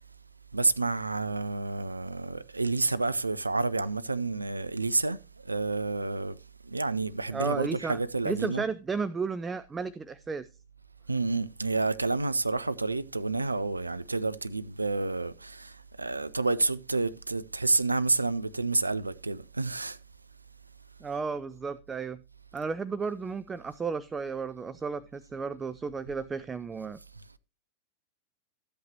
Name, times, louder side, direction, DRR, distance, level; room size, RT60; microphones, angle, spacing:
voice 1, 0.5-6.4 6.7-8.6 11.1-20.0, right 3 dB, 80° right, 0.5 m, -29 dB
voice 2, 7.3-8.0 8.3-10.5 21.0-22.2 22.5-27.0, right 5 dB, 15° right, 0.4 m, -33 dB
13.0 x 8.3 x 3.0 m
figure-of-eight pair, 90°, 0 cm